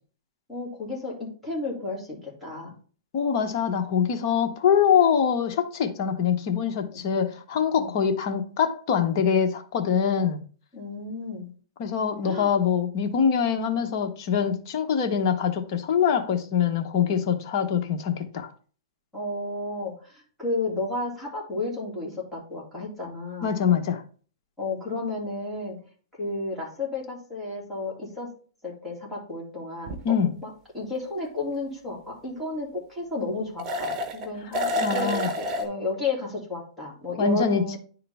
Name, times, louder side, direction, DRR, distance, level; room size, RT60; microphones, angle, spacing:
voice 1, 0.5-2.7 6.9-7.0 7.8-7.9 10.7-11.5 12.3-12.5 19.1-23.5 24.6-25.8 26.2-28.3 28.6-37.8, left 2 dB, ahead, 2.8 m, -32 dB
voice 2, 3.1-10.4 11.8-18.5 23.4-24.0 30.0-30.3 34.5-34.6 34.8-35.3 37.2-37.8, left 7 dB, 45° left, 1.1 m, -24 dB
sound 1, 29.8-30.0 33.6-34.3 34.5-35.6, left 1 dB, 30° right, 1.2 m, -28 dB
9.9 x 3.8 x 3.5 m
hypercardioid pair, 145°, 3 cm